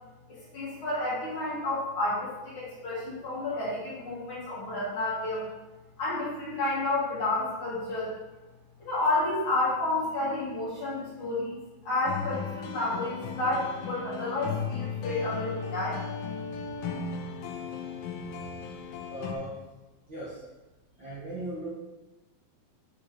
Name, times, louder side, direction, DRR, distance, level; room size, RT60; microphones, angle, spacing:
voice 1, 0.3-5.5 6.0-8.1 8.8-11.6 11.8-16.0, left 2 dB, 40° left, -8 dB, 2.3 m, -30 dB
sound 1, 12.1-19.3, left 6 dB, 75° left, 2.1 m, -36 dB
voice 2, 16.4-16.8 17.6-17.8 18.4-19.5 20.1-20.4 21.0-21.7, right 1 dB, 70° right, -9 dB, 1.1 m, -40 dB
7.5 x 4.3 x 4.7 m, 1.1 s
omnidirectional pair, 4.5 m